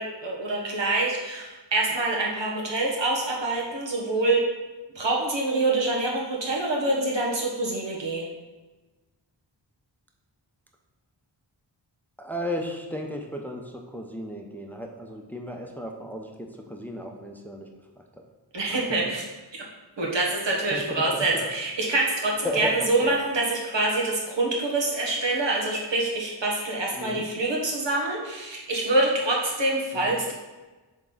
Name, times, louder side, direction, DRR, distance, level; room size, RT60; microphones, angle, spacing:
voice 1, 0.0-4.4 4.9-8.3 18.5-19.2 20.0-30.3, right 2 dB, 85° right, -2 dB, 1.4 m, -26 dB
voice 2, 12.2-17.7 18.0-18.1 18.7-19.1 20.7-21.4 22.4-23.2 26.9-27.3 29.9-30.2, equal, 5° left, 2 dB, 0.7 m, -35 dB
7.5 x 3.6 x 3.9 m, 1.2 s
wide cardioid pair, 70°, 43 cm